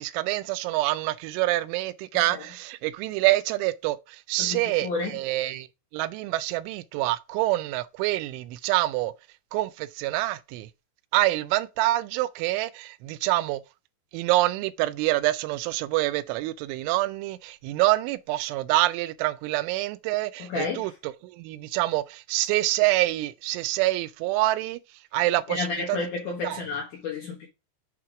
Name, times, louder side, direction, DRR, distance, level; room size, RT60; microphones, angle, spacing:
voice 1, 0.0-5.7 5.9-9.1 9.5-10.7 11.1-13.6 14.1-24.8 25.1-26.0 26.4-26.6, right 17 dB, 90° right, 3.0 m, -26 dB
voice 2, 4.4-5.2 20.4-20.9 25.5-27.5, left 4 dB, 70° left, 2.0 m, -31 dB
7.4 x 4.5 x 4.9 m
omnidirectional pair, 5.4 m